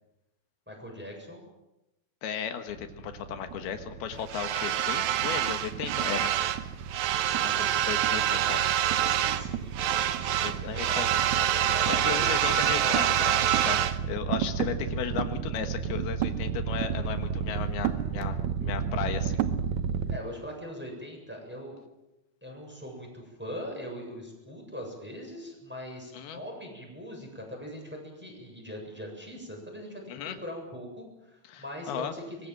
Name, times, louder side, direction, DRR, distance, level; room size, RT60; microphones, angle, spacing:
voice 1, 0.7-1.4 7.5-13.1 20.1-21.8 22.4-30.1 30.4-32.5, equal, 5° right, 0 dB, 7.3 m, -41 dB
voice 2, 2.2-6.3 7.4-8.6 10.4-11.1 11.9-13.8 14.1-19.4 26.1-26.4 30.1-30.4 31.4-32.1, left 8 dB, 85° left, 7 dB, 3.4 m, -35 dB
sound 1, 2.7-20.2, right 10 dB, 70° right, 1.9 m, -27 dB
24.5 x 22.0 x 7.6 m, 0.94 s
omnidirectional pair, 4.4 m